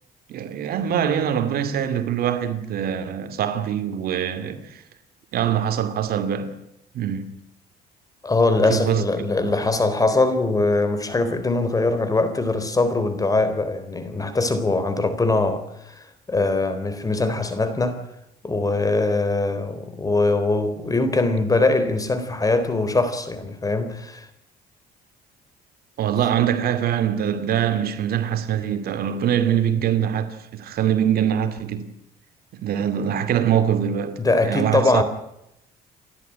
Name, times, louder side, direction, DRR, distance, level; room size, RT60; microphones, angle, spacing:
voice 1, 0.3-4.8 5.3-6.6 6.9-7.4 8.7-9.5 26.0-31.9 32.6-35.0, right 9 dB, 65° right, 2.4 m, -23 dB
voice 2, 8.2-18.0 18.4-24.3 34.2-35.0, left 2 dB, 20° left, 3.7 m, -22 dB
29.0 x 12.0 x 10.0 m
cardioid pair, 110°, 17 cm